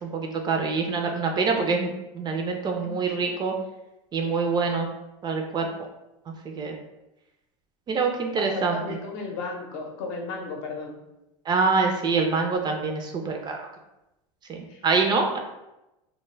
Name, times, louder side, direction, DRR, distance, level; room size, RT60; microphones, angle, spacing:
voice 1, 0.0-3.5 4.1-4.9 5.2-5.7 6.4-6.7 7.9-9.0 11.5-13.7 14.5-15.4, right 4 dB, 25° right, 3 dB, 0.3 m, -25 dB
voice 2, 4.2-4.6 8.4-11.0 14.7-14.8, left 3 dB, 60° left, 1 dB, 0.7 m, -35 dB
2.2 x 2.1 x 3.2 m, 0.94 s
hypercardioid pair, 105°, 17 cm